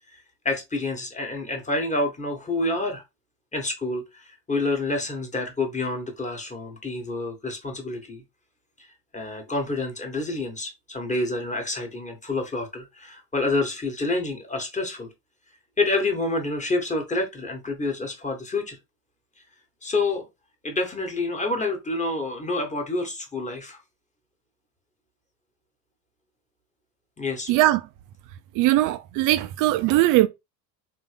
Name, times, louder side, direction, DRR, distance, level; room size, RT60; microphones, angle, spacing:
voice 1, 0.4-3.0 3.5-8.2 9.1-15.1 15.8-18.8 19.8-20.3 20.6-23.8 27.2-27.5, left 2 dB, 15° left, 1.4 m, -28 dB
voice 2, 27.5-27.8 28.6-30.3, right 16 dB, 40° right, 0.6 m, -20 dB
3.9 x 2.8 x 3.3 m
figure-of-eight pair, 65°, 50 cm